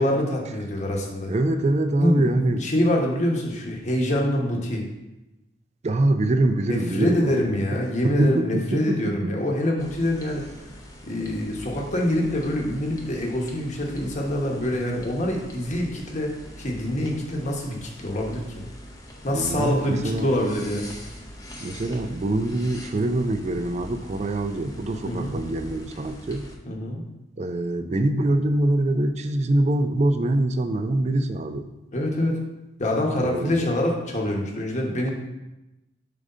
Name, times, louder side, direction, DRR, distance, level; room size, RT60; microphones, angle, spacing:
voice 1, 0.0-1.3 2.0-4.8 6.7-10.4 11.0-18.4 19.2-20.9 25.0-25.3 26.7-27.0 31.9-32.4 32.8-35.1, left 1 dB, 40° left, 0 dB, 1.0 m, -25 dB
voice 2, 1.3-2.7 5.8-7.5 8.0-9.3 19.3-20.3 21.6-26.4 27.4-31.7 33.2-33.7, right 1 dB, 35° right, 8 dB, 0.4 m, -24 dB
sound 1, 9.8-26.6, equal, 20° left, 0.7 m, -42 dB
4.9 x 3.8 x 5.4 m, 0.99 s
head